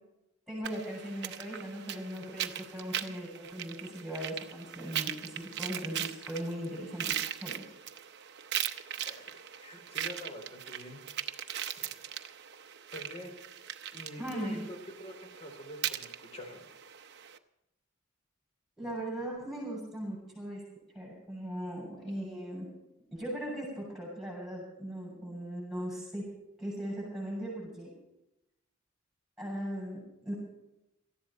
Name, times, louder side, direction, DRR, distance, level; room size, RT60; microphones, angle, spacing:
voice 1, 0.5-7.6 14.2-14.6 18.8-20.6 20.9-22.7 23.1-26.2 26.6-27.9 29.4-30.3, equal, ahead, -4 dB, 7.0 m, -39 dB
sound 1, 0.6-17.4, right 10 dB, 55° right, 0.8 m, -39 dB
voice 2, 9.6-11.0 11.8-11.9 12.9-13.3 13.9-16.6, equal, 30° left, 4 dB, 3.6 m, -46 dB
18.5 x 14.0 x 4.4 m, 0.87 s
head